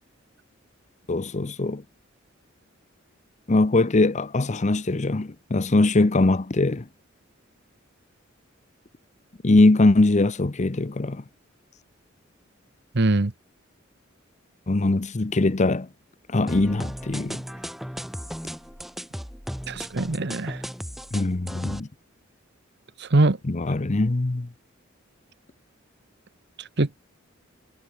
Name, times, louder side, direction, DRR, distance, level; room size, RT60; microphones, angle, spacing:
voice 1, 1.1-1.8 3.5-6.8 9.4-11.2 14.7-15.9 16.3-17.4 21.1-21.9 23.4-24.5, left 2 dB, 35° left, 0.7 m, -21 dB
voice 2, 12.9-13.3 19.7-20.6 23.0-23.4 26.8-27.0, right 2 dB, 55° right, 1.1 m, -22 dB
sound 1, 16.5-21.8, equal, ahead, 4.2 m, -36 dB
head